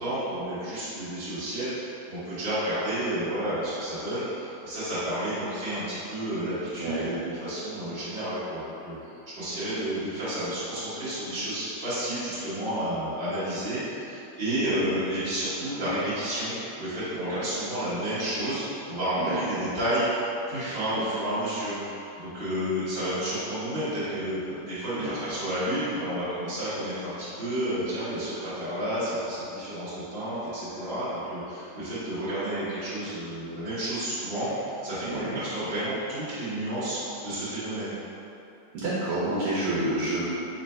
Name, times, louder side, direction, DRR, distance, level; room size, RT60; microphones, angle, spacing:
voice 1, 0.0-9.0 9.3-21.8 22.2-37.9, right 1 dB, 30° right, -15 dB, 1.4 m, -31 dB
voice 2, 6.8-7.2 14.6-14.9 19.2-19.4 24.9-25.2 35.0-35.4 38.7-40.2, right 1 dB, 80° right, -7 dB, 1.6 m, -29 dB
4.4 x 2.5 x 4.3 m, 2.9 s
omnidirectional pair, 2.4 m